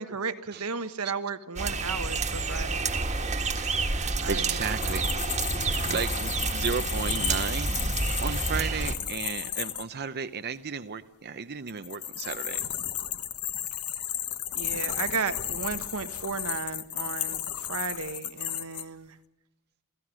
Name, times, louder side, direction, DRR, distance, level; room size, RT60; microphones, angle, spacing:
voice 1, 0.0-2.9 4.2-4.6 4.8-5.0 5.8-6.0 14.5-19.2, right 5 dB, 80° right, 1.2 m, -34 dB
voice 2, 0.5-1.1 3.5-5.3 5.6-12.6, right 5 dB, 50° right, 0.7 m, -34 dB
sound 1, 1.6-8.8, left 2 dB, 40° left, 3.9 m, -54 dB
sound 2, 1.6-8.9, right 3 dB, 30° right, 1.6 m, -29 dB
sound 3, 4.5-9.8 11.7-18.8, left 11 dB, 80° left, 1.5 m, -34 dB
27.5 x 16.5 x 6.3 m
head